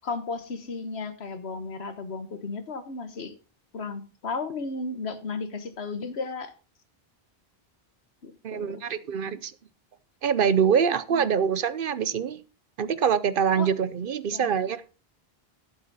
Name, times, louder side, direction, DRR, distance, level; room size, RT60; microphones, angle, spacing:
voice 1, 0.0-3.3 3.7-6.5 8.2-8.8 11.1-11.3 13.6-13.7 14.3-14.5, left 4 dB, 85° left, 10 dB, 1.5 m, -34 dB
voice 2, 8.4-9.5 10.2-12.4 12.8-14.8, right 7 dB, 60° right, 16 dB, 0.8 m, -24 dB
11.5 x 8.1 x 4.1 m, 0.34 s
omnidirectional pair, 1.1 m